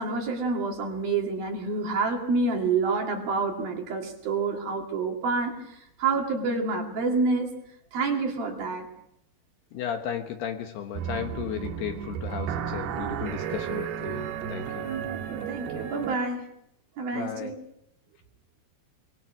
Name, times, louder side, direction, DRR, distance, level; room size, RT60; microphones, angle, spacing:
voice 1, 0.0-5.6 6.0-7.5 7.9-8.9 15.1-16.4 17.0-17.6, right 4 dB, 55° right, 2 dB, 3.9 m, -28 dB
voice 2, 9.7-14.9 17.1-17.5, left 9 dB, 70° left, 6 dB, 2.9 m, -35 dB
sound 1, 10.9-16.1, right 8 dB, 70° right, 2.7 m, -33 dB
24.5 x 22.0 x 6.1 m, 0.78 s
omnidirectional pair, 5.6 m